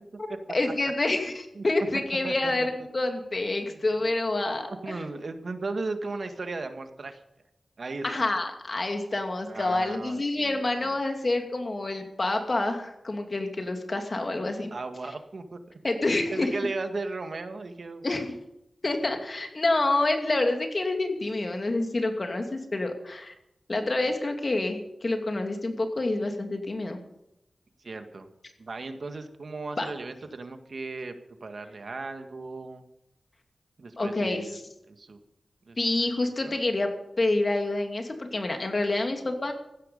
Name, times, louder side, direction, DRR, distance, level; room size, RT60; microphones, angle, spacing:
voice 1, 0.5-5.0 8.0-14.7 15.8-16.5 18.0-18.3 18.8-23.3 23.7-27.0 29.8-29.9 34.0-34.6 35.8-36.9 37.2-39.5, left 2 dB, 45° left, 5 dB, 2.5 m, -27 dB
voice 2, 3.7-4.1 4.6-7.2 7.8-8.2 9.5-11.0 14.7-15.8 16.3-18.1 27.8-28.3 28.6-32.8 33.8-34.6 34.9-35.2 35.7-35.8 36.4-36.7, right 3 dB, 65° right, 7 dB, 1.8 m, -36 dB
15.5 x 12.0 x 5.5 m, 0.86 s
wide cardioid pair, 60°, 0 cm